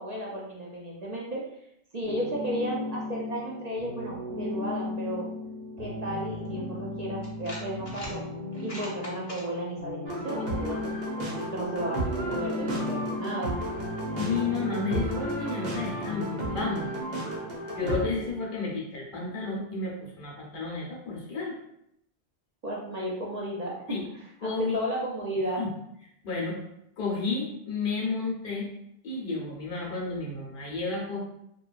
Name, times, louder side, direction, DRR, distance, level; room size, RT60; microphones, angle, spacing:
voice 1, 0.0-1.4 1.9-5.3 5.8-8.2 8.6-12.0 12.3-13.6 22.6-23.9 24.1-25.6, equal, 55° right, -4 dB, 0.5 m, -33 dB
sound 1, 2.0-18.3, left 2 dB, 35° right, 1.1 m, -37 dB
sound 2, 6.4-6.5 7.2-8.1 8.5-9.4, left 1 dB, 30° left, 0.6 m, -41 dB
sound 3, 10.1-18.1, right 1 dB, 70° right, 0.9 m, -33 dB
voice 2, 14.1-16.9 17.7-21.6 23.9-24.0 24.4-24.8 25.6-25.7 26.2-26.6 27.0-28.7 29.0-31.2, left 4 dB, 60° left, -2 dB, 0.8 m, -31 dB
2.7 x 2.3 x 2.4 m, 0.76 s
omnidirectional pair, 1.0 m